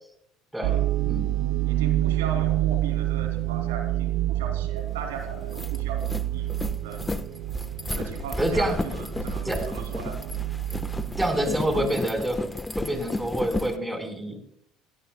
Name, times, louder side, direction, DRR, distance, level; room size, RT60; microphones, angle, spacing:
voice 1, 0.5-1.4 8.4-8.8 9.4-9.6 11.2-12.5 12.8-14.4, right 1 dB, 10° right, 5 dB, 4.9 m, -27 dB
sound 1, 0.6-11.9, right 14 dB, 70° right, 0.6 m, -28 dB
voice 2, 1.6-6.5 6.8-7.0 7.9-10.2, right 5 dB, 85° right, 4 dB, 3.0 m, -38 dB
sound 2, 4.9-5.0 5.3-13.8, left 2 dB, 15° left, 1.3 m, -33 dB
19.5 x 16.0 x 2.3 m, 0.75 s
hypercardioid pair, 75°, 0 cm